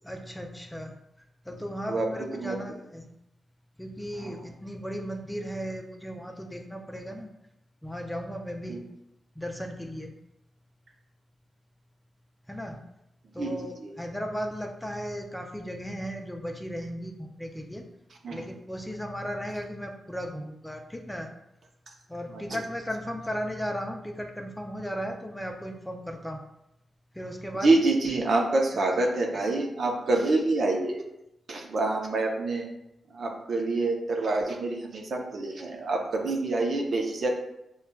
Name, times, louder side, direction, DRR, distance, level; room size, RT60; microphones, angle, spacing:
voice 1, 0.0-0.9 1.5-3.1 3.8-7.3 7.8-8.8 9.4-10.1 12.5-12.8 13.3-17.9 18.3-21.3 22.1-26.4 27.2-27.7, equal, 5° left, 3 dB, 0.4 m, -36 dB
voice 2, 1.9-2.6 4.2-4.5 8.7-8.9 13.4-13.9 18.2-18.4 22.3-22.6 27.6-31.0 31.5-32.7 33.1-37.3, right 2 dB, 65° right, 1 dB, 0.6 m, -27 dB
5.4 x 2.3 x 2.2 m, 0.85 s
cardioid pair, 70°, 0 cm